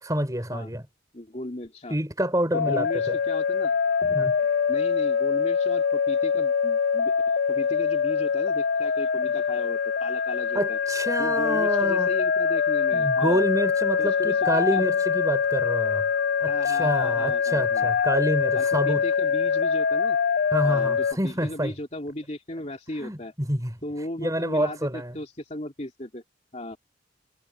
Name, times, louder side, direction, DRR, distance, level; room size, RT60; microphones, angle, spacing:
voice 1, 0.0-0.8 1.9-3.2 4.0-4.4 10.5-12.1 12.9-16.1 16.4-19.0 20.5-21.7 23.0-23.8 24.2-25.2, right 1 dB, 15° right, 5.1 m, -27 dB
voice 2, 1.1-2.0 2.5-3.8 4.7-7.1 7.5-10.8 11.2-13.5 14.0-14.8 16.4-17.9 18.5-20.2 20.6-23.3 23.8-26.2 26.5-26.8, left 1 dB, 35° left, 3.1 m, -36 dB
sound 1, 2.5-21.1, left 6 dB, 50° left, 0.4 m, -24 dB
head